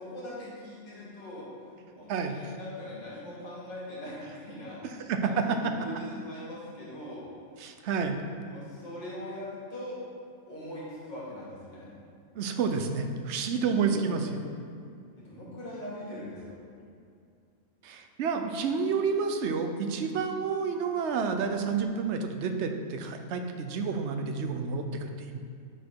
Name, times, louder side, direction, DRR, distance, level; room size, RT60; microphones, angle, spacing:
voice 1, 0.0-7.2 8.4-10.0 10.5-11.9 13.5-14.4 15.2-16.6, left 1 dB, 30° left, -8 dB, 2.1 m, -41 dB
voice 2, 2.1-2.5 5.1-5.2 7.6-8.2 12.3-14.4 17.8-25.4, right 5 dB, 60° right, 6 dB, 0.9 m, -30 dB
10.5 x 4.2 x 4.6 m, 2.4 s
omnidirectional pair, 1.5 m